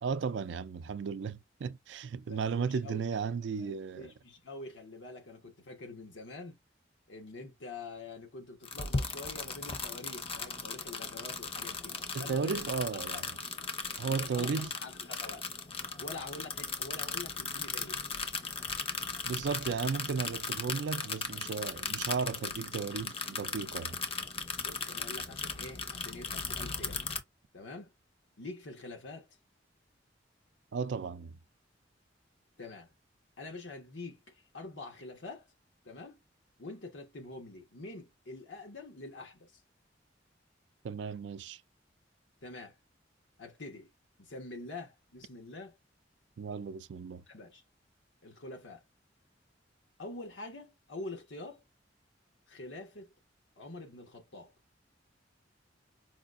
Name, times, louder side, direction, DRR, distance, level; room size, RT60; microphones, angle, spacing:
voice 1, 0.0-4.1 12.1-13.4 14.0-14.7 19.3-24.0 30.7-31.3 40.8-41.6 46.4-47.2, right 5 dB, 70° right, 0.4 m, -35 dB
voice 2, 2.3-3.0 3.6-6.6 7.1-12.7 13.1-13.3 14.1-15.5 16.0-18.0 24.6-27.0 27.5-27.9 28.4-29.3 32.6-32.9 33.4-35.5 35.8-36.2 36.6-39.6 42.4-42.8 43.4-43.9 44.2-45.8 47.3-47.6 48.2-48.8 50.0-51.6 52.5-53.1 53.6-54.5, left 2 dB, 85° left, 1.2 m, -46 dB
sound 1, 8.6-27.2, left 4 dB, 30° left, 0.6 m, -37 dB
4.9 x 2.3 x 2.4 m
head